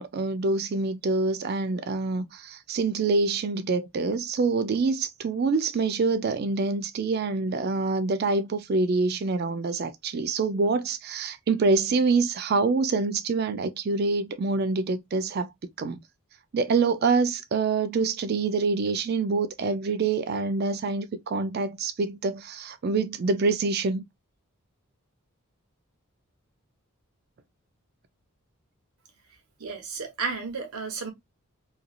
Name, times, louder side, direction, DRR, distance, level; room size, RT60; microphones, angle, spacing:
voice 1, 0.0-15.5 15.8-16.0 16.5-24.0, right 4 dB, 45° right, 0.3 m, -26 dB
voice 2, 29.6-31.1, right 4 dB, 80° right, 1.0 m, -32 dB
3.2 x 2.4 x 2.3 m
head